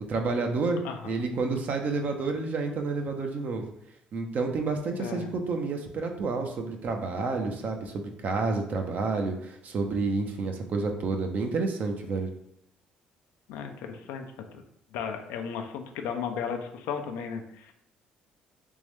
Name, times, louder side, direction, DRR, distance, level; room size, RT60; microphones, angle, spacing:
voice 1, 0.1-3.7 4.1-12.3, right 3 dB, 55° right, 4 dB, 0.8 m, -29 dB
voice 2, 0.8-1.2 5.0-5.4 13.5-14.3 14.5-14.6 14.9-17.7, left 7 dB, 80° left, 5 dB, 0.5 m, -35 dB
3.6 x 3.0 x 3.3 m, 0.75 s
supercardioid pair, 65°, 3 cm